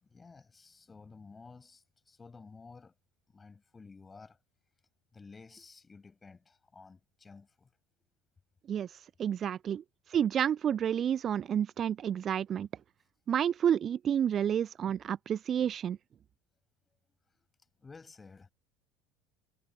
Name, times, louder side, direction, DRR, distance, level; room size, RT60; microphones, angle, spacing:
voice 1, 0.0-2.9 3.3-4.4 5.1-7.7 9.2-9.3 9.7-9.8 17.4-17.5 17.8-18.5, left 4 dB, 20° left, 5.1 m, -53 dB
voice 2, 9.2-9.8 10.1-12.7 13.3-16.0, right 9 dB, 35° right, 0.3 m, -30 dB
figure-of-eight pair, 65°, 0 cm